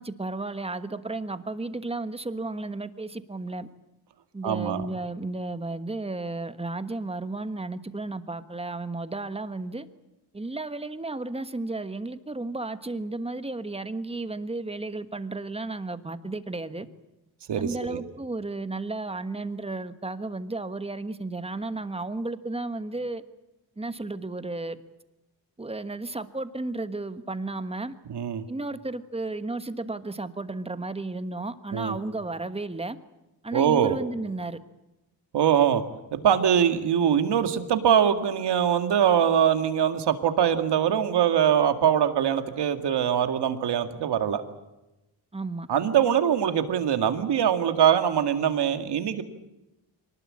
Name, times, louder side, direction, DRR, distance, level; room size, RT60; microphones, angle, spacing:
voice 1, 0.0-3.7 4.3-9.9 10.3-16.9 17.6-23.2 23.8-24.8 25.6-28.0 28.5-33.0 33.4-34.6 45.3-45.7, right 2 dB, 15° right, 11 dB, 1.3 m, -33 dB
voice 2, 4.4-4.9 17.5-18.0 28.1-28.4 31.7-32.0 33.5-34.0 35.3-35.8 36.1-44.4 45.7-49.2, right 9 dB, 70° right, 8 dB, 2.2 m, -23 dB
24.0 x 19.5 x 8.7 m, 0.97 s
cardioid pair, 110°, 43 cm